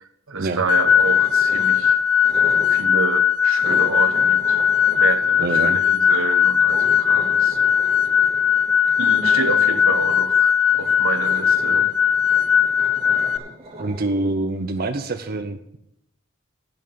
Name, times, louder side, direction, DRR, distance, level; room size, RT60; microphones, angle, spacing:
voice 1, 0.0-2.0 2.7-4.6 4.9-7.6 9.0-11.9, right 4 dB, 85° right, 8 dB, 1.1 m, -28 dB
sound 1, 0.7-13.4, left 8 dB, 85° left, 0.5 m, -18 dB
sound 2, 0.7-1.9 2.2-2.9 3.6-6.2 6.7-14.7, right 1 dB, 30° right, 3.4 m, -38 dB
voice 2, 5.4-5.8 13.8-15.8, right 2 dB, 45° right, 7 dB, 0.6 m, -25 dB
8.7 x 6.6 x 8.6 m, 0.80 s
head